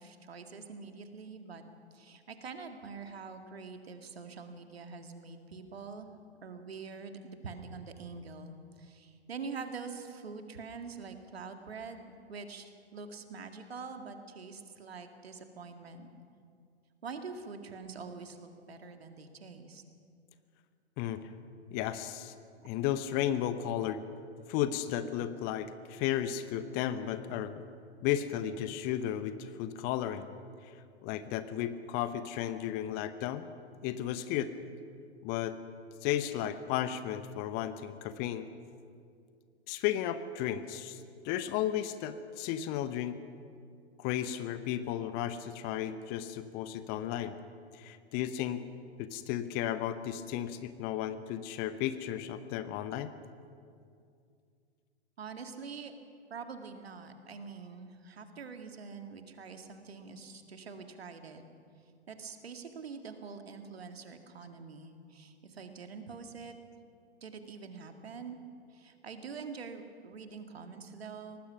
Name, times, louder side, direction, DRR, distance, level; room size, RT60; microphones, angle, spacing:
voice 1, 0.0-1.7 1.9-6.1 6.4-12.0 12.3-16.1 17.0-19.8 22.6-22.7 55.2-55.9 56.3-61.4 62.1-66.5 67.2-68.4 68.7-71.4, right 5 dB, 65° right, 6 dB, 2.1 m, -45 dB
voice 2, 21.0-21.3 21.7-22.3 22.6-24.0 24.5-27.6 28.0-30.3 30.6-33.5 33.8-34.5 35.2-35.6 36.0-38.5 39.7-43.2 44.0-47.3 47.7-48.6 49.0-53.1, left 11 dB, 30° left, 12 dB, 0.9 m, -34 dB
23.5 x 19.0 x 6.1 m, 2.3 s
figure-of-eight pair, 105°, 33 cm